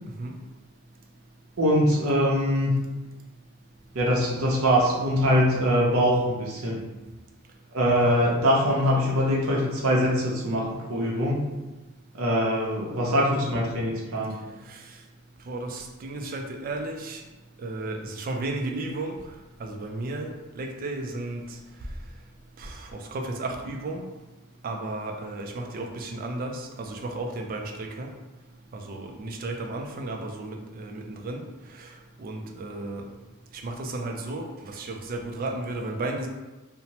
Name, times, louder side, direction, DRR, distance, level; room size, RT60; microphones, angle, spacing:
voice 1, 1.6-2.7 3.9-6.8 7.7-11.4 12.1-14.4, equal, 80° right, -3 dB, 0.7 m, -23 dB
voice 2, 15.5-17.2 17.6-19.2 19.6-21.5 22.6-24.1 24.6-28.1 28.7-31.4 32.2-33.0 33.6-36.3, right 2 dB, 40° right, 3 dB, 0.3 m, -33 dB
2.7 x 2.1 x 2.9 m, 1.1 s
head